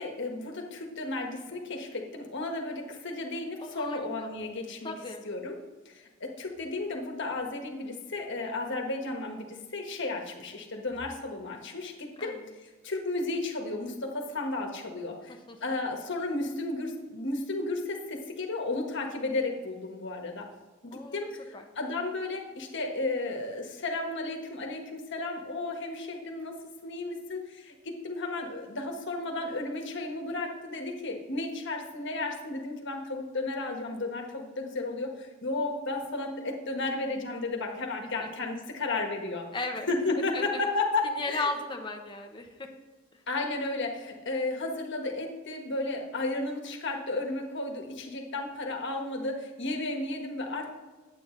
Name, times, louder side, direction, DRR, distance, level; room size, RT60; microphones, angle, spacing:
voice 1, 0.0-4.9 5.2-5.6 5.8-20.5 20.8-39.5 39.9-41.5 43.3-50.7, left 2 dB, 60° left, 2 dB, 1.4 m, -33 dB
voice 2, 3.6-4.3 4.8-5.2 12.2-12.5 15.5-15.6 20.9-21.2 21.5-21.7 38.2-38.3 39.5-39.9 40.3-40.6 41.0-42.7, left 3 dB, 25° left, 3 dB, 0.9 m, -36 dB
9.3 x 8.4 x 3.8 m, 1.3 s
head